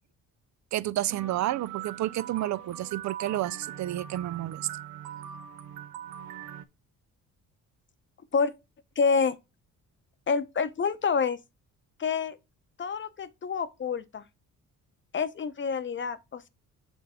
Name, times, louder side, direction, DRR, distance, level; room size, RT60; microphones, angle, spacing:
voice 1, 0.7-4.6, right 14 dB, 55° right, 0.4 m, -30 dB
sound 1, 1.1-6.6, right 10 dB, 90° right, 0.7 m, -41 dB
voice 2, 9.0-9.4 10.3-11.4 12.0-12.4 12.8-14.2 15.1-16.5, left 5 dB, 35° left, 0.8 m, -27 dB
8.0 x 3.3 x 3.6 m
cardioid pair, 90°, 35 cm